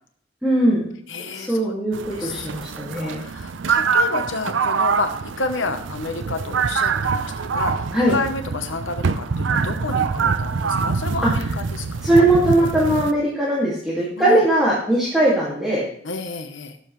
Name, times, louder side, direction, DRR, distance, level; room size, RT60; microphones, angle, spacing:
voice 1, 0.4-0.9 1.3-3.2 7.9-8.1 11.2-11.3 12.0-15.9, right 1 dB, ahead, -7 dB, 2.1 m, -19 dB
voice 2, 1.1-1.7 2.1-2.5 3.0-12.3 14.2-14.4 16.0-16.8, left 3 dB, 75° left, 7 dB, 0.9 m, -30 dB
sound 1, 1.9-13.1, right 5 dB, 70° right, 0.5 m, -24 dB
16.5 x 7.2 x 3.1 m, 0.64 s
head